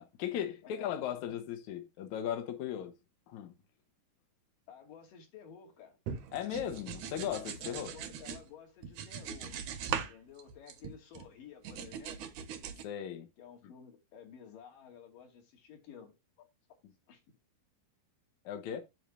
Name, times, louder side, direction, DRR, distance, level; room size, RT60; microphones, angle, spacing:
voice 1, 0.0-2.9 3.3-3.6 6.3-7.9 9.9-10.1 12.8-13.3 16.8-16.9 18.5-18.8, left 10 dB, 70° left, 1.8 m, -37 dB
voice 2, 0.6-1.3 4.7-6.0 7.6-9.6 9.9-12.2 13.4-16.2 17.1-17.2, left 7 dB, 55° left, 3.7 m, -53 dB
sound 1, 6.1-8.4 8.8-10.1 10.4-11.3 11.6-12.8, right 8 dB, 80° right, 1.7 m, -40 dB
9.4 x 4.0 x 6.7 m
omnidirectional pair, 5.0 m